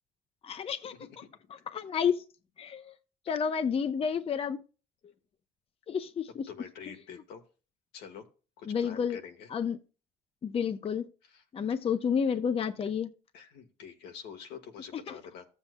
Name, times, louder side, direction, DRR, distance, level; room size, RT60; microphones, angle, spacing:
voice 1, 0.4-0.9 1.7-2.2 2.6-2.9 3.3-4.6 5.9-6.4 8.7-9.2 9.5-9.8 10.4-11.1 11.5-13.1 15.1-15.2, left 7 dB, 35° left, 0.6 m, -30 dB
voice 2, 6.5-7.4 7.9-8.2 8.6-9.5 11.2-11.4 13.3-15.5, left 7 dB, 85° left, 1.5 m, -46 dB
14.5 x 7.3 x 2.2 m
cardioid pair, 110°, 17 cm